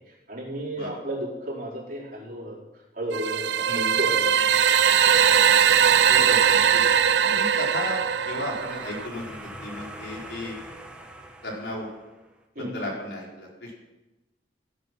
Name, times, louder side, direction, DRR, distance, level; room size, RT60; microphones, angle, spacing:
voice 1, 0.3-2.6 3.0-4.3 12.5-12.7, right 1 dB, 55° right, -5 dB, 4.7 m, -33 dB
sound 1, 3.1-9.1, right 8 dB, 85° right, 0.6 m, -20 dB
voice 2, 6.1-6.8 7.2-8.0 8.2-10.6 11.4-11.9 12.6-13.8, left 1 dB, 80° left, -2 dB, 4.5 m, -35 dB
sound 2, 7.7-12.3, right 1 dB, 5° right, 1.4 m, -43 dB
16.0 x 9.6 x 6.2 m, 1.1 s
head